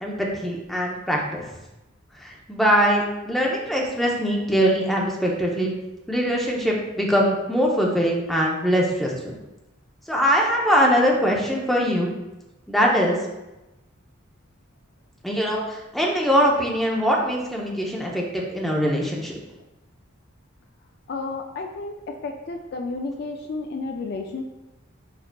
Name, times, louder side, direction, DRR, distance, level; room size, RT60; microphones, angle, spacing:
voice 1, 0.0-1.4 2.2-5.7 6.1-9.4 10.1-12.1 12.7-13.2 15.2-19.3, equal, ahead, -2 dB, 0.6 m, -22 dB
voice 2, 21.1-24.4, left 3 dB, 50° left, 4 dB, 0.3 m, -32 dB
4.8 x 4.7 x 2.2 m, 0.99 s
head